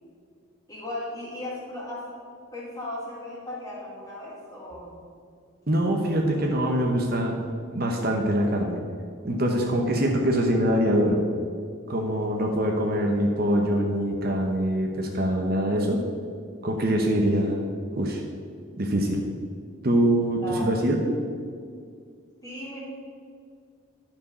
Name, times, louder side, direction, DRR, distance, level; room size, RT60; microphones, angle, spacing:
voice 1, 0.7-2.2 2.5-4.9 18.1-18.2 20.4-20.7 22.4-22.8, left 1 dB, 15° left, -6 dB, 2.6 m, -36 dB
voice 2, 5.7-7.4 7.7-8.8 9.2-11.2 11.9-16.0 16.6-17.6 17.9-18.2 18.8-19.2 19.8-21.0, right 1 dB, 50° right, 1 dB, 0.9 m, -24 dB
11.5 x 4.8 x 5.5 m, 2.2 s
head